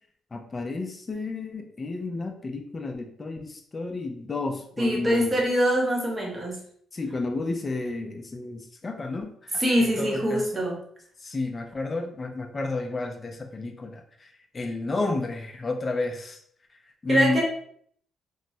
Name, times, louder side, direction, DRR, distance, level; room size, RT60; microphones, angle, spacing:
voice 1, 0.3-5.4 6.9-10.7 11.2-16.4 17.0-17.4, left 3 dB, 30° left, 4 dB, 0.4 m, -31 dB
voice 2, 4.8-6.6 9.6-10.8 17.1-17.4, equal, 20° right, -2 dB, 1.0 m, -24 dB
3.1 x 2.1 x 2.7 m, 0.63 s
cardioid pair, 90°, 0 cm